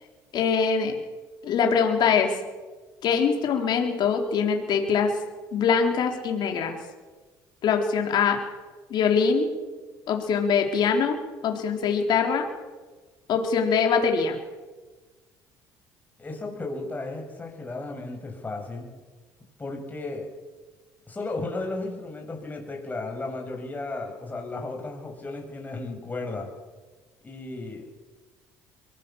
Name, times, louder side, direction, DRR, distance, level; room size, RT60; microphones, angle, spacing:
voice 1, 0.3-1.0 1.4-2.3 3.0-5.1 5.5-6.7 7.6-8.4 8.9-9.5 10.1-11.2 11.4-12.5 13.3-14.4, left 6 dB, 60° left, 3 dB, 4.1 m, -23 dB
voice 2, 16.2-18.9 19.6-20.3 21.1-26.5 27.2-27.9, left 2 dB, 20° left, 2 dB, 6.6 m, -34 dB
23.5 x 18.5 x 7.3 m, 1.3 s
supercardioid pair, 85°, 8 cm